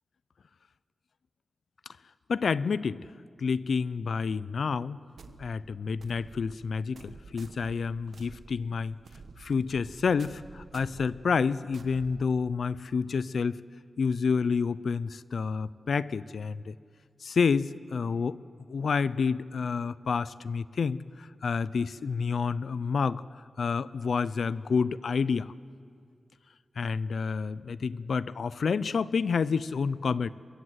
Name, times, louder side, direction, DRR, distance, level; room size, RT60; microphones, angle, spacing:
voice 1, 2.3-3.0 3.4-5.0 5.4-9.0 9.4-13.6 14.0-16.7 17.2-18.4 18.7-23.2 23.6-25.5 26.8-30.3, left 5 dB, 75° left, 18 dB, 0.5 m, -29 dB
sound 1, 5.2-12.8, right 4 dB, 75° right, 1.2 m, -51 dB
24.0 x 22.0 x 8.1 m, 2.2 s
wide cardioid pair, 150°, 0 cm